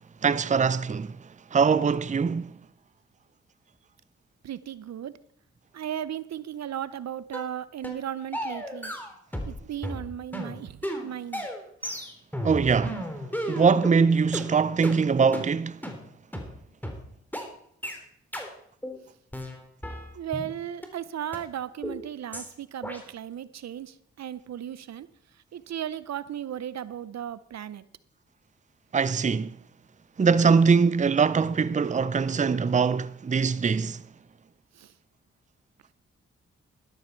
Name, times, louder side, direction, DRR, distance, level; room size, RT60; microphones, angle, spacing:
voice 1, 0.2-1.2 1.5-2.6 12.4-13.0 13.5-15.8 28.9-29.6 30.2-34.0, right 5 dB, 25° right, 0.6 m, -22 dB
voice 2, 4.4-5.1 5.7-9.0 9.5-11.5 20.1-25.1 25.5-27.8 34.8-34.9, right 10 dB, 65° right, 0.7 m, -36 dB
sound 1, 7.3-7.5 7.8-8.0 8.3-9.6 9.8-14.0 14.3-14.5 14.8-15.0 15.3-15.5 15.8-16.0 16.3-16.5 16.8-17.0 17.3-17.5 17.8-18.0 18.3-18.5 18.8-19.0 19.3-20.5 20.8-20.9 21.3-21.4 21.8-22.0 22.3-22.5 22.8-23.0, equal, 5° left, 3.3 m, -34 dB
12.5 x 12.0 x 4.5 m
supercardioid pair, 45°, 29 cm